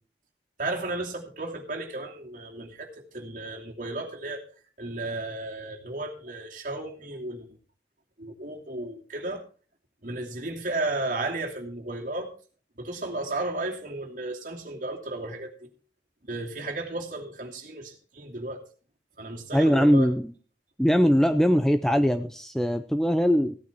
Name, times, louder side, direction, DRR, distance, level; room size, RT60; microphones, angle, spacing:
voice 1, 0.6-4.4 4.8-7.6 8.2-9.4 10.0-12.3 12.8-15.7 16.2-18.6 19.2-20.1, right 2 dB, 45° right, 0 dB, 2.8 m, -34 dB
voice 2, 19.5-20.3 20.8-23.6, equal, ahead, 10 dB, 0.5 m, -21 dB
16.0 x 9.3 x 4.4 m, 0.39 s
head